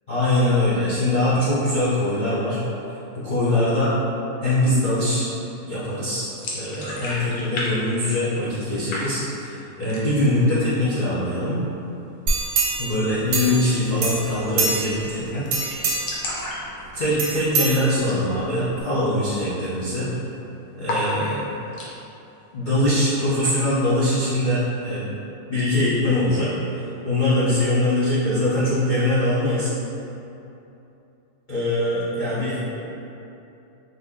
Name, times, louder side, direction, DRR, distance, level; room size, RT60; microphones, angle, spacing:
voice 1, 0.1-2.6 3.1-3.9 4.4-5.3 5.7-6.3 6.5-11.6 12.8-15.4 16.9-20.1 20.8-21.5 22.5-25.1 25.5-26.5 27.0-29.7 31.5-32.8, left 1 dB, 65° left, -11 dB, 0.4 m, -22 dB
sound 1, 6.3-7.7 7.9-8.6 8.9-9.5 9.8-10.3 10.7-10.8 11.1-11.7 13.4-13.6 13.9-14.0 14.2-14.3 14.7-15.0 15.3-15.4 15.6-17.6 18.0-18.2 18.6-18.7 19.2-19.5 19.8-20.4 20.8-21.9, left 1 dB, 85° left, 1.2 m, -32 dB
sound 2, 12.3-13.7 14.0-15.1 15.5-16.3 17.2-18.3 18.8-18.9, right 3 dB, 70° right, 0.9 m, -25 dB
2.7 x 2.6 x 3.4 m, 2.9 s
omnidirectional pair, 1.7 m